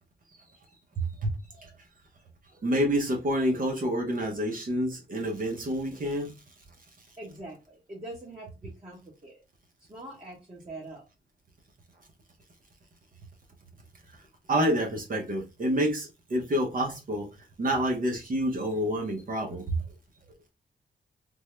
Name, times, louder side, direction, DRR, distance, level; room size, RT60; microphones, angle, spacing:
voice 1, 1.2-1.7 2.5-6.3 14.5-17.3 17.6-19.8, equal, 50° right, 0.8 m, -28 dB
voice 2, 7.2-9.4 9.9-11.0, right 1 dB, 30° right, 1.1 m, -43 dB
3.5 x 2.1 x 3.1 m
wide cardioid pair, 120°, 18 cm